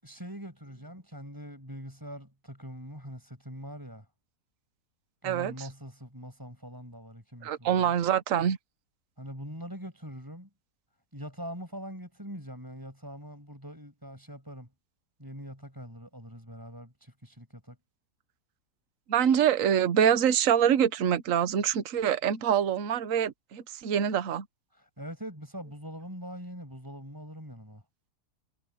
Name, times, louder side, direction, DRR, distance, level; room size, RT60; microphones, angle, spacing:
voice 1, 0.0-4.0 5.2-7.9 9.2-10.5 11.1-14.7 15.2-17.7 24.7-27.8, equal, 10° right, 6.6 m, -43 dB
voice 2, 7.4-8.6 19.1-24.4, right 9 dB, 55° right, 1.3 m, -25 dB
omnidirectional pair, 1.8 m